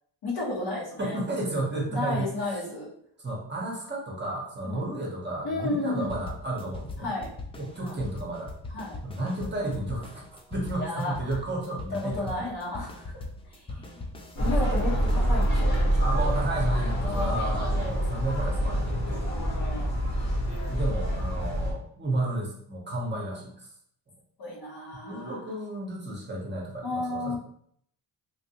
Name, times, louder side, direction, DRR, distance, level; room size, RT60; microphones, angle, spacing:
voice 1, 0.2-1.2 1.9-2.9 4.6-4.9 5.4-6.1 7.0-7.3 7.8-8.0 8.7-9.0 10.8-11.2 11.9-13.2 13.5-14.0 14.3-15.9 16.1-16.3 17.0-17.6 19.2-20.0 24.4-25.4 26.8-27.4, left 2 dB, 60° left, -4 dB, 1.4 m, -33 dB
voice 2, 1.0-2.3 3.2-7.1 7.6-8.5 9.0-10.2 10.5-12.4 13.7-13.8 14.4-14.5 16.0-19.2 20.7-23.7 25.0-27.4, right 2 dB, 25° right, -2 dB, 0.9 m, -32 dB
sound 1, 6.1-16.0, left 2 dB, 15° left, 0.3 m, -40 dB
sound 2, 14.4-21.7, equal, 40° left, 1.3 m, -26 dB
3.1 x 2.5 x 2.8 m, 0.66 s
cardioid pair, 90°, 42 cm